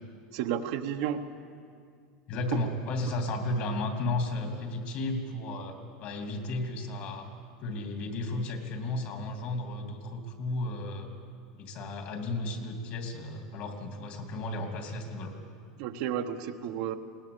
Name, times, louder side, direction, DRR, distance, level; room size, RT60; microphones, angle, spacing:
voice 1, 0.3-1.2 15.8-16.9, right 9 dB, 70° right, 6 dB, 1.2 m, -32 dB
voice 2, 2.3-7.3 7.6-11.1 11.6-15.3, left 2 dB, 55° left, 4 dB, 3.0 m, -34 dB
20.5 x 18.5 x 7.0 m, 2.2 s
supercardioid pair, 130°, 3 cm